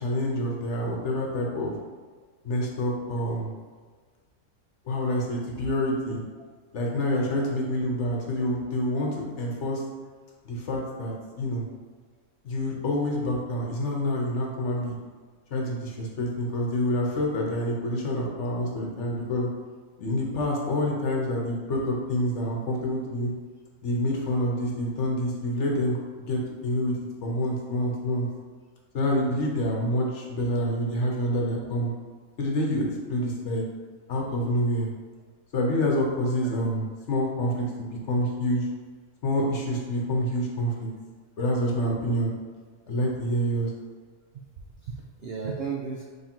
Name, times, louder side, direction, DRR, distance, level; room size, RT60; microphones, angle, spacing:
voice 1, 0.0-1.8 2.4-3.5 4.9-6.2 6.7-9.1 9.4-9.8 10.4-11.6 12.4-15.0 15.5-19.5 20.0-23.3 23.8-26.9 27.2-28.3 28.9-31.9 32.4-33.6 34.1-34.9 35.5-38.6 39.2-40.9 41.4-42.3 42.9-43.7, equal, 60° left, -1 dB, 1.0 m, -27 dB
voice 2, 7.0-7.5 44.3-46.0, right 5 dB, 70° right, -1 dB, 0.6 m, -36 dB
3.7 x 3.3 x 4.4 m, 1.5 s
omnidirectional pair, 1.5 m